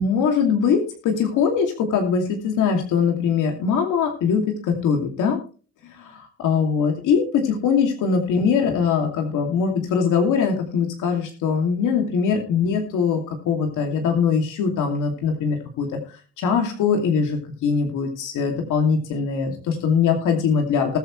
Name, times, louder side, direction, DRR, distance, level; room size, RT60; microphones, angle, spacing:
voice 1, 0.0-5.4 5.9-21.0, left 6 dB, 85° left, 2 dB, 2.6 m, -22 dB
19.5 x 8.1 x 3.2 m, 0.38 s
cardioid pair, 90°, 30 cm